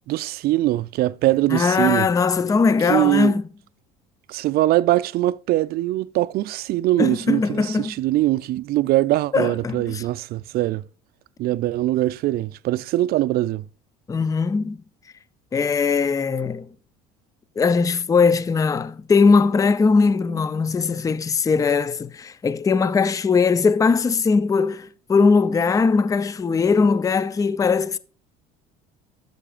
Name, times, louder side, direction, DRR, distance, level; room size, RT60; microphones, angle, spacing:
voice 1, 0.1-2.1 2.9-3.4 4.3-10.8 11.4-13.7, right 16 dB, 55° right, 0.4 m, -22 dB
voice 2, 1.5-3.4 7.0-7.9 9.3-10.0 14.1-14.8 15.5-16.7 17.6-28.0, left 5 dB, 15° left, 0.5 m, -20 dB
12.0 x 7.7 x 2.5 m
supercardioid pair, 85°, 19 cm